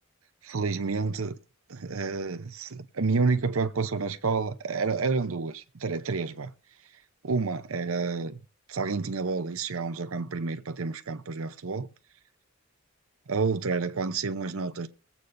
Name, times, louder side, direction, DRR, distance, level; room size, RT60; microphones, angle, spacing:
voice 1, 0.4-1.4 1.7-6.5 7.2-8.4 8.7-11.9 13.3-14.9, right 4 dB, 70° right, 0.7 m, -29 dB
21.5 x 8.1 x 2.6 m
head